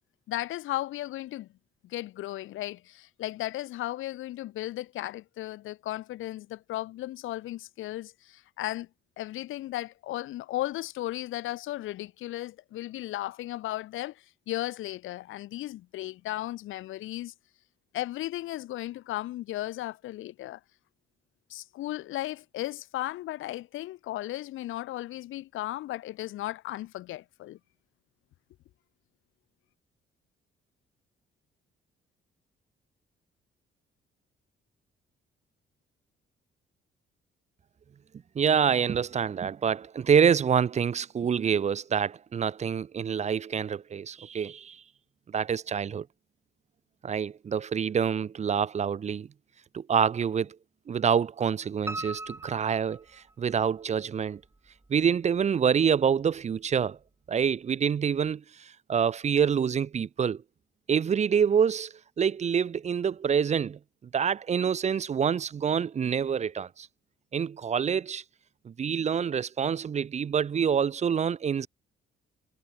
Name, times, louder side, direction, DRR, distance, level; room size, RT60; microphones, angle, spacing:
voice 1, 0.3-1.5 1.8-8.9 9.2-17.3 17.9-20.6 21.5-27.6, left 15 dB, 85° left, 3.0 m, -35 dB
voice 2, 38.4-44.8 45.3-46.1 47.0-49.3 49.7-50.6 50.9-54.4 54.9-57.0 57.3-60.4 60.9-63.8 64.1-66.9 67.3-68.2 68.6-71.7, right 7 dB, 35° right, 0.5 m, -26 dB
Piano, 51.9-53.8 54.2-55.1 55.4-55.5 56.0-56.1 56.3-56.4, right 2 dB, 15° right, 3.1 m, -40 dB
cardioid pair, 90°, 20 cm